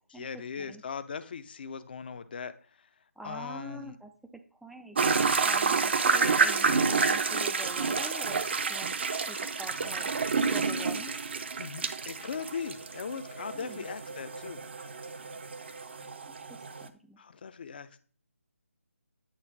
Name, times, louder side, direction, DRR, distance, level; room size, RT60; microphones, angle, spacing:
voice 1, 0.1-2.5 3.2-4.0 11.6-14.6 17.2-18.0, left 6 dB, 40° left, 11 dB, 0.6 m, -39 dB
voice 2, 3.2-4.1 4.6-8.4 8.7-8.9 9.3-10.1 10.5-11.2 13.5-13.9 16.4-16.5 16.8-17.2, right 1 dB, ahead, 5 dB, 0.4 m, -45 dB
sound 1, 4.9-16.9, right 5 dB, 45° right, 0.7 m, -29 dB
8.9 x 3.8 x 5.9 m, 0.42 s
figure-of-eight pair, 155°, 8 cm